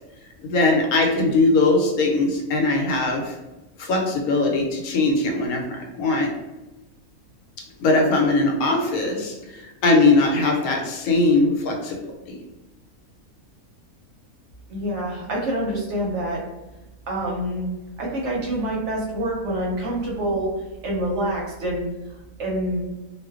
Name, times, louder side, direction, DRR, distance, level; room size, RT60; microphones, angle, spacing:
voice 1, 0.4-3.3 3.8-6.3 7.8-12.0 12.3-12.4, left 2 dB, 90° left, 1 dB, 1.1 m, -20 dB
voice 2, 14.7-16.4 17.1-17.7 18.0-20.5 20.8-21.9 22.4-22.8, right 1 dB, 65° right, -2 dB, 0.8 m, -26 dB
2.4 x 2.2 x 2.3 m, 1.0 s
omnidirectional pair, 1.5 m